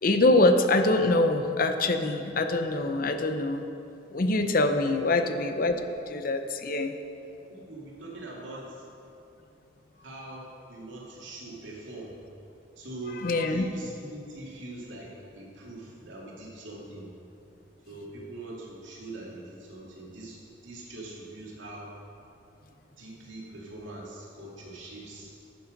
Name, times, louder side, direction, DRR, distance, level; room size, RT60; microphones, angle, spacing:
voice 1, 0.0-3.6 4.1-6.9 13.2-13.6, left 2 dB, 45° left, 7 dB, 0.6 m, -24 dB
voice 2, 5.0-5.4 7.5-8.9 10.0-12.2 12.8-17.1 17.9-21.9 23.0-25.3, right 2 dB, 85° right, -4 dB, 2.5 m, -42 dB
12.0 x 7.2 x 5.2 m, 2.7 s
head